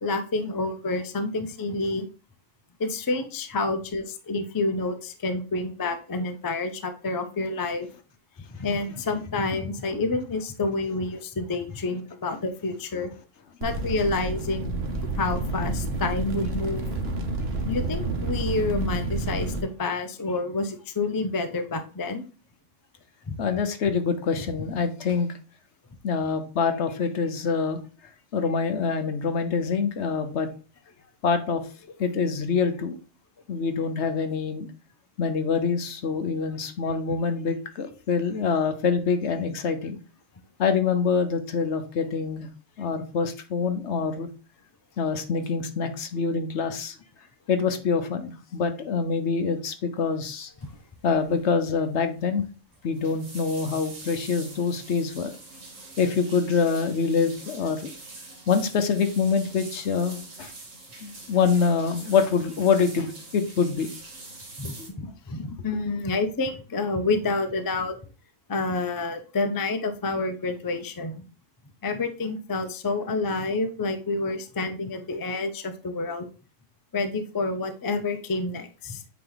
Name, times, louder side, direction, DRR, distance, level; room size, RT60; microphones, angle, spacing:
voice 1, 0.0-2.1 2.8-7.9 8.6-13.1 13.6-14.7 15.1-16.8 17.6-22.2 23.3-23.4 64.6-67.9 68.5-71.2 71.8-76.3 76.9-79.0, left 3 dB, 35° left, 0.3 m, -28 dB
sound 1, 13.6-19.6, right 2 dB, 55° right, 1.2 m, -29 dB
voice 2, 23.4-25.3 26.0-27.8 28.3-30.5 31.2-31.6 32.0-33.0 33.5-34.7 35.2-40.0 40.6-42.5 42.8-44.3 45.0-47.0 47.5-50.5 51.0-52.4 52.8-55.3 56.0-57.9 58.5-60.5 61.0-63.9 64.8-64.9, left 5 dB, 65° left, 1.1 m, -25 dB
sound 2, 50.6-50.8 51.1-51.4 51.7-51.8 52.7-64.9, right 3 dB, 90° right, 2.0 m, -44 dB
8.3 x 2.9 x 3.9 m
omnidirectional pair, 1.3 m